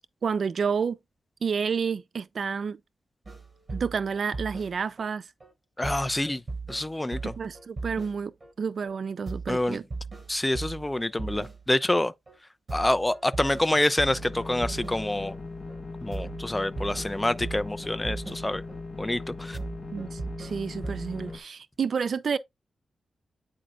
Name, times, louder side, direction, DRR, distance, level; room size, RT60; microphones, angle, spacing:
voice 1, 0.2-1.0 1.4-2.8 3.7-5.2 7.2-8.3 8.6-9.8 19.9-22.4, right 6 dB, 55° right, 0.4 m, -30 dB
sound 1, 3.2-5.1 5.4-5.5 5.8-8.5 8.8-8.9 9.3-11.9 12.3-12.4 12.7-15.4 15.7-15.8 16.1-18.8 19.1-19.2 19.5-21.4, right 3 dB, 30° right, 5.2 m, -38 dB
voice 2, 5.8-6.4 6.7-7.3 9.5-9.8 10.3-12.1 12.7-15.3 16.0-18.6 19.0-19.6, left 1 dB, 10° left, 0.4 m, -27 dB
sound 2, 14.0-21.4, left 3 dB, 35° left, 1.2 m, -39 dB
8.9 x 5.0 x 2.4 m
wide cardioid pair, 125°, 0 cm